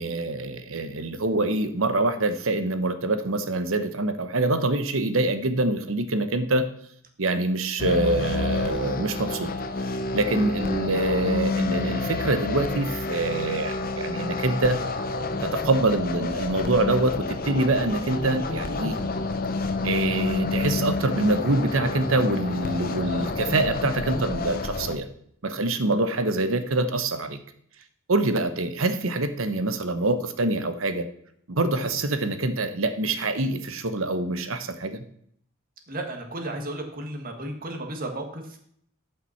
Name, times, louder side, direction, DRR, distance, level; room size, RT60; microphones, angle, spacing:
voice 1, 0.0-6.7 7.2-9.5 10.1-14.8 15.4-19.0 19.8-25.1 25.4-27.4 28.1-31.1 31.5-35.0, right 2 dB, 75° right, 10 dB, 1.0 m, -25 dB
sound 1, 7.8-25.0, left 3 dB, 45° left, 0.8 m, -29 dB
voice 2, 35.9-38.6, right 1 dB, 45° right, 3 dB, 1.7 m, -34 dB
11.0 x 5.7 x 5.8 m, 0.66 s
head